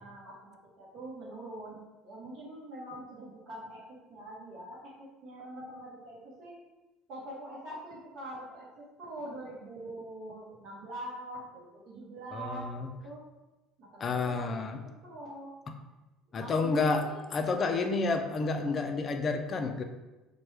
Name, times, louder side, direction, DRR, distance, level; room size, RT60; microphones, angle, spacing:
voice 1, 0.0-6.5 7.1-13.2 13.8-15.5 16.3-17.3, right 1 dB, 60° right, -8 dB, 0.9 m, -44 dB
voice 2, 12.3-12.9 14.0-14.8 16.3-19.8, left 3 dB, 30° left, 5 dB, 0.3 m, -30 dB
4.3 x 2.2 x 3.1 m, 1.1 s
cardioid pair, 135°, 0 cm